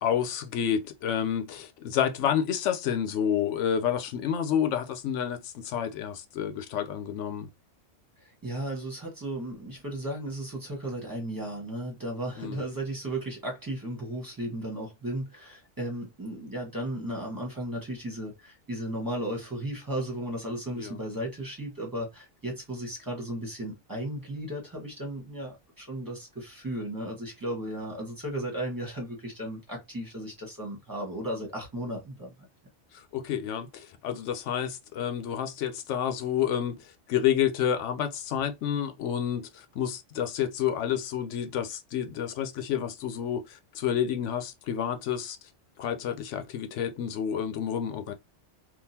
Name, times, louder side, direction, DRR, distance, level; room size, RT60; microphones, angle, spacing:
voice 1, 0.0-7.5 12.4-12.6 20.7-21.0 32.9-36.7 37.1-45.4 45.8-48.1, left 9 dB, 85° left, 0.9 m, -29 dB
voice 2, 8.2-32.3, right 1 dB, 15° right, 1.4 m, -35 dB
3.7 x 2.5 x 2.7 m
omnidirectional pair, 1.2 m